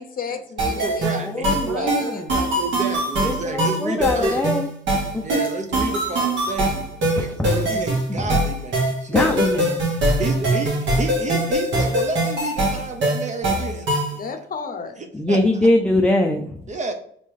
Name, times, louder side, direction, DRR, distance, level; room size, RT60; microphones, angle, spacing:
voice 1, 0.0-2.5 14.2-15.0, left 5 dB, 45° left, 7 dB, 0.8 m, -33 dB
sound 1, 0.6-14.2, right 1 dB, 70° right, 2.0 m, -22 dB
voice 2, 0.7-2.0 2.6-4.5 5.2-6.9 7.1-7.3 7.7-9.2 10.2-13.9 15.0-15.4 16.7-16.9, right 3 dB, 35° right, 5 dB, 0.9 m, -30 dB
voice 3, 1.2-2.3 3.2-4.7 5.1-5.4 7.2-8.4 9.1-9.9 15.1-16.7, left 1 dB, 5° left, 2 dB, 0.5 m, -23 dB
4.1 x 3.3 x 3.6 m, 0.63 s
cardioid pair, 90°, 20 cm